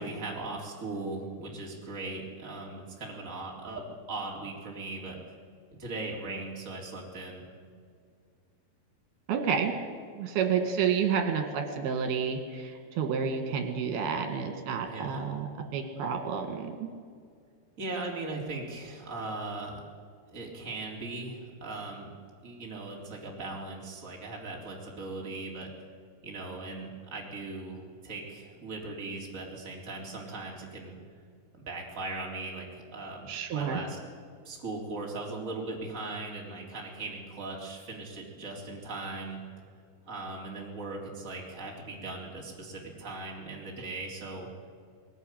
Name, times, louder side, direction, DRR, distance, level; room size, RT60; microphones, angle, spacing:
voice 1, 0.0-5.2 5.8-7.4 14.9-15.2 17.8-19.8 20.3-22.1 22.4-25.7 26.2-31.0 31.5-34.0 34.4-39.4 40.1-44.5, right 2 dB, 20° right, -2 dB, 3.7 m, -39 dB
voice 2, 9.3-9.7 10.2-15.5 15.7-16.9 33.3-33.8, right 6 dB, 75° right, 5 dB, 4.0 m, -30 dB
20.5 x 18.5 x 9.3 m, 2.1 s
omnidirectional pair, 4.6 m